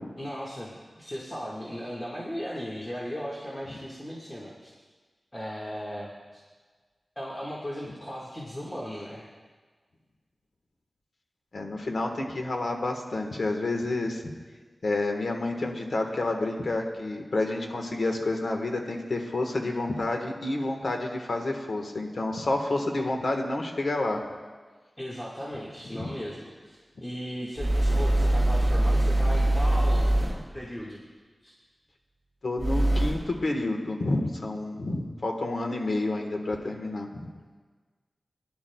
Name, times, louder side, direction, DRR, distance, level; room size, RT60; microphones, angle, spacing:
voice 1, 0.2-4.7 5.3-6.4 7.2-9.3 25.0-30.2 30.5-31.0 31.4-31.5, equal, 20° left, -6 dB, 1.7 m, -37 dB
voice 2, 11.5-14.2 14.8-24.2 25.9-26.1 32.4-37.3, left 2 dB, 65° left, 3 dB, 1.4 m, -29 dB
sound 1, 27.6-30.6 32.6-33.4, right 1 dB, 10° right, 0.7 m, -23 dB
21.0 x 11.0 x 2.3 m, 1.4 s
wide cardioid pair, 105°, 0 cm